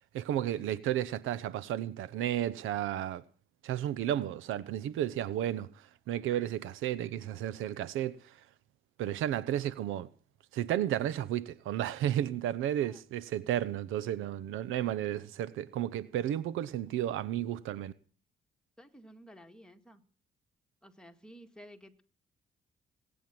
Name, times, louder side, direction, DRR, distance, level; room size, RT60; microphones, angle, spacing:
voice 1, 0.0-3.2 3.6-8.4 9.0-10.1 10.5-17.9, right 11 dB, 90° right, 0.8 m, -33 dB
voice 2, 18.8-20.0 20.8-22.0, equal, 5° left, 2.0 m, -53 dB
19.5 x 9.2 x 7.7 m
cardioid pair, 90°, 20 cm